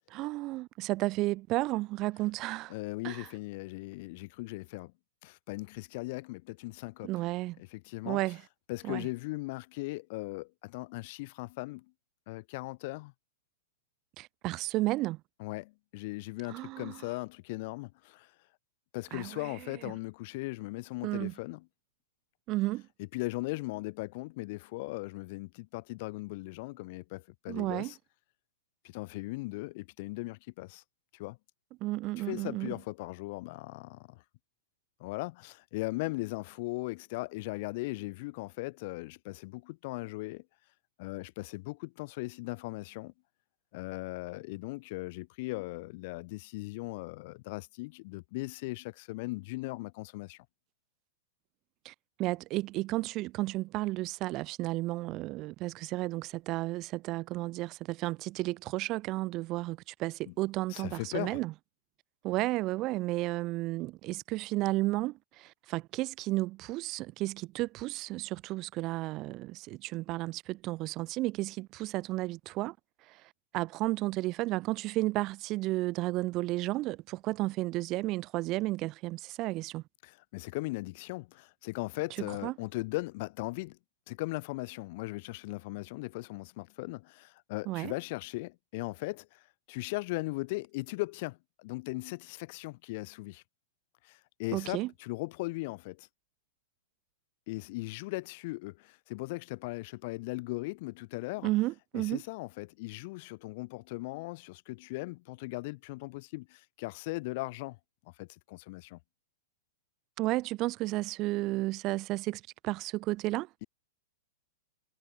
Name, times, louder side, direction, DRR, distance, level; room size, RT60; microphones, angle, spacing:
voice 1, 0.1-2.7 3.0-3.3 7.0-7.6 8.1-8.4 8.8-9.1 14.2-15.2 16.5-17.0 19.1-19.5 21.0-21.3 22.5-22.8 27.5-27.9 31.8-32.7 51.8-51.9 52.2-61.5 62.2-72.7 73.1-73.2 73.5-79.8 82.4-82.5 87.7-87.9 94.5-94.9 101.4-102.2 110.2-113.5, right 19 dB, 35° right, 0.4 m, -33 dB
voice 2, 2.7-4.9 5.2-7.1 7.6-8.2 8.7-11.9 12.3-13.1 15.4-18.3 18.9-21.6 23.0-28.0 28.8-30.8 31.1-31.4 32.2-34.2 35.0-40.4 41.0-43.1 43.7-50.4 60.3-60.4 60.7-61.4 80.0-83.8 84.1-89.4 89.7-93.4 94.0-96.1 97.5-101.5 101.9-107.8 108.2-109.0, left 23 dB, 50° left, 0.7 m, -38 dB
hypercardioid pair, 145°, 0 cm